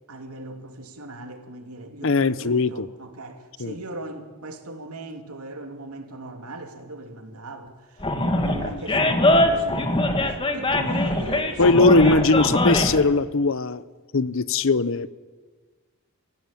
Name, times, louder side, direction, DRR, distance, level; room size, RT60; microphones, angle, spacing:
voice 1, 0.1-12.9, right 2 dB, 85° right, 2.8 m, -38 dB
voice 2, 2.0-2.9 3.6-3.8 8.6-8.8 11.6-13.8 14.1-15.1, left 3 dB, 60° left, 0.8 m, -20 dB
Animal, 8.0-13.0, left 1 dB, 25° left, 1.6 m, -22 dB
24.5 x 16.0 x 9.0 m
head